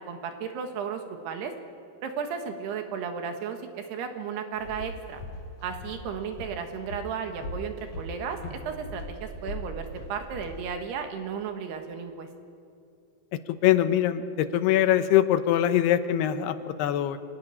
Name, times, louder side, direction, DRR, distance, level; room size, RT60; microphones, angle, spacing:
voice 1, 0.1-1.5 2.0-5.2 5.6-12.3, right 6 dB, 80° right, 5 dB, 3.6 m, -34 dB
Walk footsteps, 4.5-10.6, left 1 dB, 40° left, 3.0 m, -40 dB
voice 2, 13.3-17.2, left 11 dB, 80° left, 10 dB, 2.9 m, -23 dB
24.5 x 17.0 x 9.9 m, 2.5 s
omnidirectional pair, 4.7 m